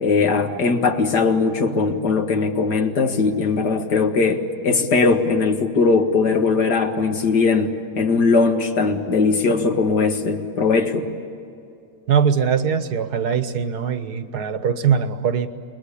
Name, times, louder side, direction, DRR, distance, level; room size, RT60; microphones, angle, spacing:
voice 1, 0.0-11.1, left 4 dB, 70° left, 5 dB, 2.3 m, -19 dB
voice 2, 12.1-15.5, right 7 dB, 65° right, 10 dB, 1.7 m, -21 dB
28.5 x 22.5 x 8.6 m, 2.6 s
omnidirectional pair, 1.9 m